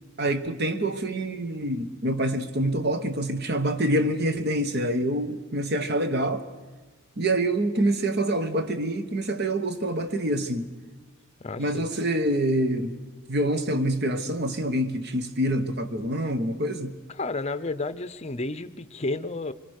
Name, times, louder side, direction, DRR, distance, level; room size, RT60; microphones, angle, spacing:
voice 1, 0.2-6.5 7.2-10.7 11.6-12.9 13.3-17.0, right 1 dB, 50° right, 1.3 m, -26 dB
voice 2, 11.4-11.9 17.1-19.5, left 2 dB, 30° left, 0.7 m, -31 dB
25.5 x 21.5 x 6.6 m
head